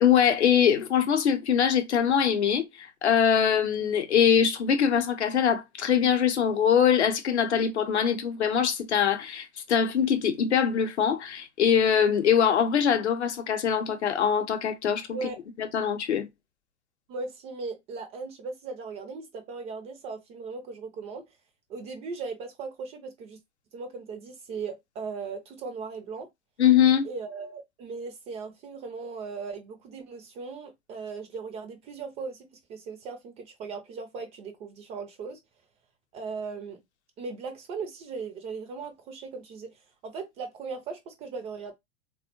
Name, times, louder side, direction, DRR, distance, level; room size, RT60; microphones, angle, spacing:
voice 1, 0.0-15.3 15.6-16.3 26.6-27.1, left 8 dB, 70° left, 0.7 m, -23 dB
voice 2, 17.1-21.2 21.7-23.4 23.7-26.3 27.0-35.4 36.1-36.8 37.2-41.7, right 4 dB, 20° right, 0.3 m, -38 dB
3.5 x 2.1 x 2.9 m
figure-of-eight pair, 85°, 36 cm